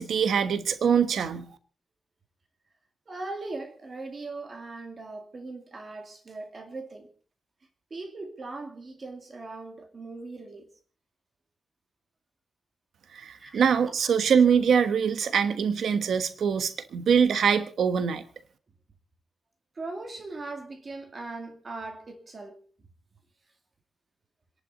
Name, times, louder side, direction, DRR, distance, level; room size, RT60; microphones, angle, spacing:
voice 1, 0.0-1.5 13.1-18.2, right 7 dB, 85° right, 1.2 m, -23 dB
voice 2, 3.1-7.1 7.9-10.7 13.3-13.6 19.8-22.6, right 3 dB, 35° right, 2.3 m, -39 dB
28.0 x 11.0 x 4.1 m
wide cardioid pair, 170°, 0 cm